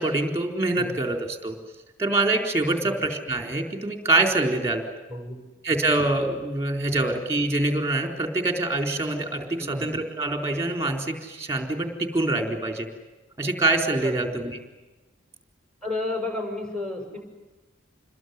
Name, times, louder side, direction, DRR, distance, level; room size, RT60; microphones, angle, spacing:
voice 1, 0.0-1.6 2.0-4.8 5.6-12.9 13.4-14.6, right 2 dB, 15° right, 3 dB, 4.1 m, -25 dB
voice 2, 5.1-5.4 9.6-9.9 14.0-14.5 15.8-17.2, left 2 dB, 5° left, 3 dB, 6.6 m, -32 dB
28.0 x 21.5 x 9.6 m, 1.1 s
head